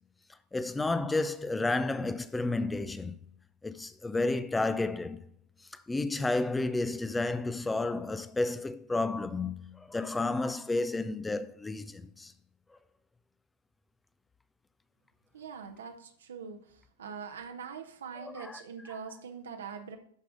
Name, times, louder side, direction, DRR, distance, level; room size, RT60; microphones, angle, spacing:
voice 1, 0.5-3.2 3.6-5.2 5.7-12.3 18.3-18.6, left 2 dB, 10° left, 0.5 m, -31 dB
voice 2, 15.3-20.0, right 6 dB, 65° right, 1.0 m, -43 dB
12.0 x 4.9 x 3.8 m
figure-of-eight pair, 90°, 0 cm